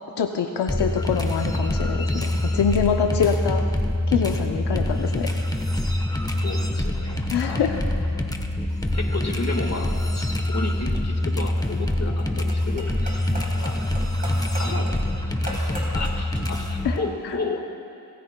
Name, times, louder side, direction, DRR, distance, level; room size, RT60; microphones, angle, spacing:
voice 1, 0.2-3.6 4.1-5.3 7.3-7.8 13.3-13.5 16.8-17.0 17.2-17.3, left 7 dB, 90° left, 4 dB, 0.7 m, -25 dB
sound 1, 0.7-17.0, left 1 dB, 10° left, 1.1 m, -25 dB
voice 2, 6.4-7.6 8.9-13.2 13.6-13.8 14.6-14.9 15.4-17.6, left 3 dB, 40° left, 3 dB, 1.8 m, -32 dB
sound 2, 10.9-16.8, equal, 20° right, 3.7 m, -38 dB
25.0 x 14.5 x 2.3 m, 2.5 s
cardioid pair, 60°, 39 cm